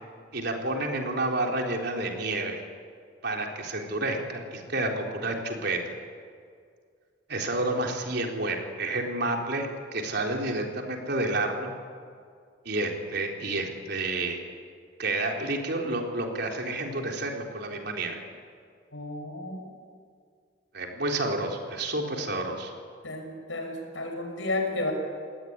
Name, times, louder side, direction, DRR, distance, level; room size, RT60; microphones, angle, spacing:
voice 1, 0.3-2.6 3.2-5.9 7.3-11.7 12.7-14.4 15.0-18.2 20.7-22.7, right 2 dB, 60° right, 1 dB, 4.0 m, -30 dB
voice 2, 18.9-19.5 23.0-24.9, left 2 dB, 80° left, 3 dB, 6.3 m, -32 dB
28.0 x 19.5 x 9.7 m, 2.1 s
head